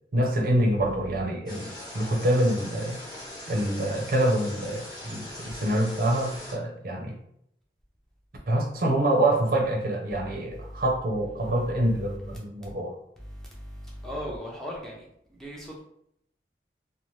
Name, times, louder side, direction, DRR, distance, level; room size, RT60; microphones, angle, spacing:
voice 1, 0.1-3.0 3.5-7.2 8.5-12.9, right 1 dB, 55° right, 0 dB, 0.5 m, -26 dB
sound 1, 1.5-6.5, left 1 dB, 25° left, 0.8 m, -41 dB
voice 2, 13.2-15.8, equal, 5° left, -3 dB, 0.5 m, -38 dB
2.7 x 2.0 x 3.1 m, 0.73 s
head